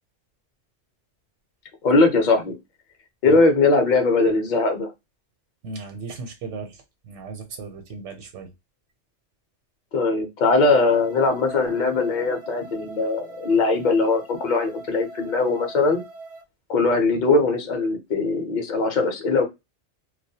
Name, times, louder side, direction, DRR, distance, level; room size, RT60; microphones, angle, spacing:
voice 1, 1.8-2.6 3.2-4.9 9.9-16.0 16.7-19.4, left 3 dB, 50° left, 0.7 m, -20 dB
voice 2, 5.6-8.5, right 4 dB, 75° right, 0.9 m, -36 dB
sound 1, 10.4-16.4, right 3 dB, 55° right, 0.4 m, -42 dB
2.3 x 2.1 x 2.6 m
omnidirectional pair, 1.2 m